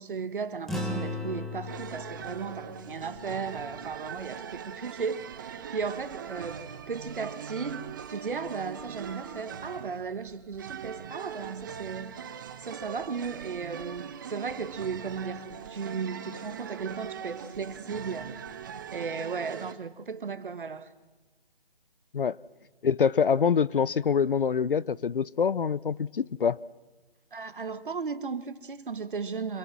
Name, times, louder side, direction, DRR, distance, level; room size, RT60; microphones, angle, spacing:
voice 1, 0.0-12.2 12.6-18.4 18.9-20.9 27.3-29.6, right 5 dB, 60° right, 1.6 m, -35 dB
sound 1, 0.7-5.3, left 1 dB, ahead, 1.2 m, -38 dB
sound 2, 1.7-19.7, right 8 dB, 20° right, 0.8 m, -41 dB
voice 2, 22.8-26.6, left 6 dB, 65° left, 0.7 m, -25 dB
26.5 x 24.5 x 6.2 m
figure-of-eight pair, 155°, 29 cm